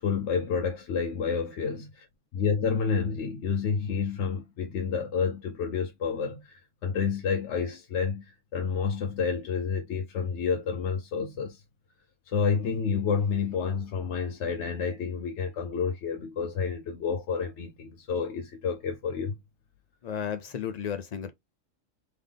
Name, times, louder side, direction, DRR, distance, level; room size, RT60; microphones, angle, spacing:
voice 1, 0.0-2.1 2.3-11.6 12.3-19.3, left 6 dB, 65° left, 0.9 m, -29 dB
voice 2, 20.0-21.3, left 8 dB, 85° left, 0.3 m, -33 dB
3.8 x 3.3 x 3.4 m
omnidirectional pair, 1.3 m